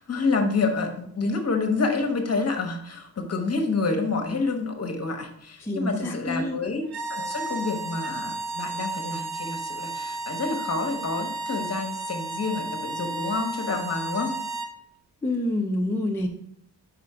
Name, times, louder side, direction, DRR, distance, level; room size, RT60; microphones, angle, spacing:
voice 1, 0.0-6.8 7.1-14.3, left 3 dB, 40° left, 5 dB, 0.8 m, -28 dB
voice 2, 5.6-6.6 15.2-16.3, left 1 dB, 5° left, 0 dB, 0.4 m, -27 dB
sound 1, 6.8-14.7, right 2 dB, 70° right, 0.7 m, -33 dB
4.9 x 4.4 x 4.8 m, 0.69 s
wide cardioid pair, 170°, 39 cm